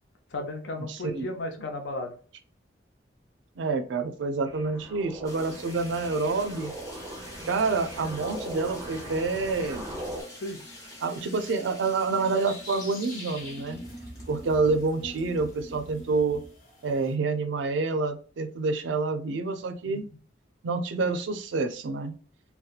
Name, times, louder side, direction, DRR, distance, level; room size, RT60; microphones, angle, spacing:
voice 1, 0.3-2.1 10.4-10.8 19.8-20.0, left 2 dB, 75° left, 5 dB, 0.6 m, -35 dB
voice 2, 0.9-1.3 3.6-6.7 7.5-9.8 11.0-13.8 14.3-16.4 16.8-20.0 20.6-22.1, right 4 dB, 80° right, 8 dB, 0.4 m, -28 dB
sound 1, 4.4-10.2, right 1 dB, 20° right, 0.4 m, -39 dB
sound 2, 5.2-16.6, equal, 15° left, 0.7 m, -45 dB
sound 3, 10.0-17.1, left 2 dB, 50° left, 1.0 m, -49 dB
2.7 x 2.2 x 2.3 m, 0.42 s
head